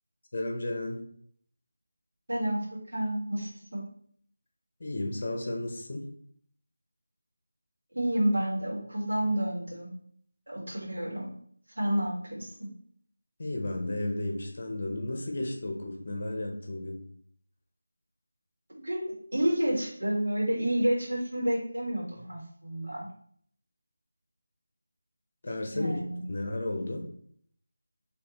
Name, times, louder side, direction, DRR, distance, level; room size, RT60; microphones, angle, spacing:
voice 1, 0.3-1.0 4.8-6.0 13.4-17.0 25.4-26.0 26.3-27.1, left 1 dB, 45° left, 2 dB, 0.9 m, -33 dB
voice 2, 2.3-3.8 7.9-10.0 10.5-11.3 11.7-12.7 18.8-23.1 25.7-26.2, right 1 dB, 75° right, -4 dB, 1.6 m, -30 dB
4.0 x 2.9 x 3.1 m, 0.62 s
figure-of-eight pair, 165°, 0 cm